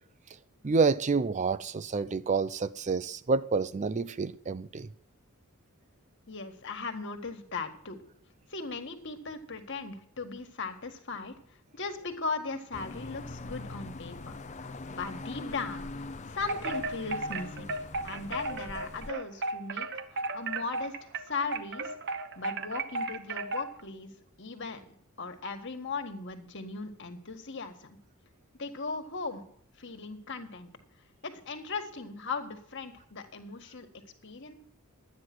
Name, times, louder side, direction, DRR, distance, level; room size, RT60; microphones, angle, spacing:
voice 1, 0.6-4.9, right 4 dB, 35° right, 0.4 m, -28 dB
voice 2, 6.3-8.0 8.5-11.3 11.7-14.3 14.9-17.7 18.0-21.9 22.3-24.1 24.4-24.8 25.2-28.0 28.6-29.4 29.8-30.7 31.2-33.9 34.2-34.5, left 4 dB, 55° left, 1.8 m, -38 dB
sound 1, 12.7-19.1, left 2 dB, 30° left, 0.7 m, -42 dB
Wind chime, 16.4-23.8, right 3 dB, 50° right, 1.0 m, -35 dB
12.0 x 9.5 x 6.1 m
head